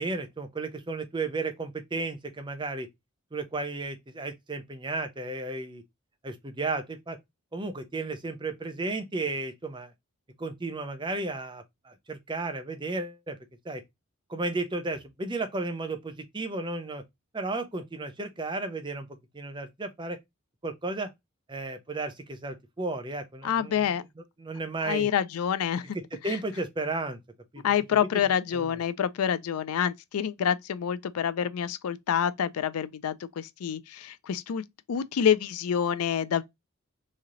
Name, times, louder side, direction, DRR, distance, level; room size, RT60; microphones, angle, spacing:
voice 1, 0.0-2.9 3.3-5.8 6.2-7.2 7.5-9.9 10.4-13.4 13.6-13.8 14.3-17.0 17.3-19.1 19.3-20.2 20.6-21.1 21.5-23.9 24.4-25.1 25.9-27.2 27.5-27.6 28.5-28.8, right 3 dB, 20° right, 0.5 m, -33 dB
voice 2, 23.4-24.0 24.9-26.0 26.3-26.4 27.6-36.4, left 8 dB, 90° left, 0.4 m, -27 dB
3.2 x 2.8 x 3.7 m
head